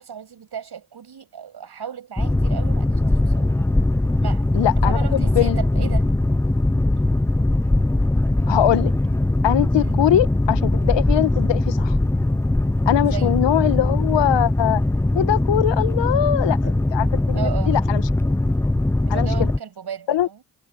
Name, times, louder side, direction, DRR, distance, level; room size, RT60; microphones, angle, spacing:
voice 1, 0.0-3.5 4.2-4.5 4.8-6.1 9.8-10.0 13.0-13.4 17.3-17.8 19.1-20.4, right 8 dB, 55° right, 6.8 m, -35 dB
Boat Water vehicle, 2.2-19.6, left 2 dB, 5° left, 0.6 m, -20 dB
voice 2, 4.5-5.6 8.5-8.9 9.4-12.0 12.9-14.8 15.1-18.0 19.1-19.5 20.1-20.3, left 12 dB, 65° left, 1.7 m, -22 dB
hypercardioid pair, 45°, 47 cm